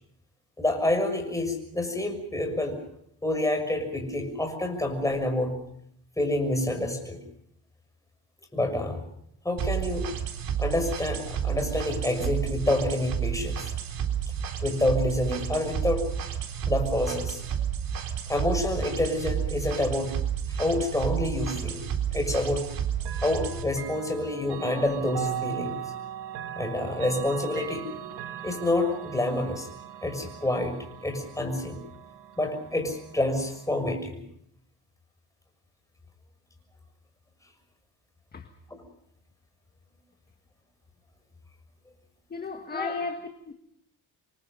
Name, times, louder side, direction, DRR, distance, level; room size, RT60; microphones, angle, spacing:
voice 1, 0.6-2.8 3.2-5.6 6.2-7.2 8.5-9.0 9.4-10.1 10.6-13.7 14.6-16.0 16.6-17.4 18.3-20.2 20.5-21.8 22.1-22.6 23.2-25.8 26.6-28.0 28.4-29.7 30.0-31.8 32.4-34.2 38.7-38.8 42.7-42.9, left 1 dB, 10° left, 6.4 m, -28 dB
sound 1, 9.6-23.6, right 8 dB, 55° right, 3.9 m, -31 dB
Chime / Clock, 23.0-33.8, right 10 dB, 80° right, 2.2 m, -39 dB
voice 2, 42.3-43.5, left 4 dB, 25° left, 1.7 m, -35 dB
28.0 x 23.5 x 5.4 m
cardioid pair, 140°, 39 cm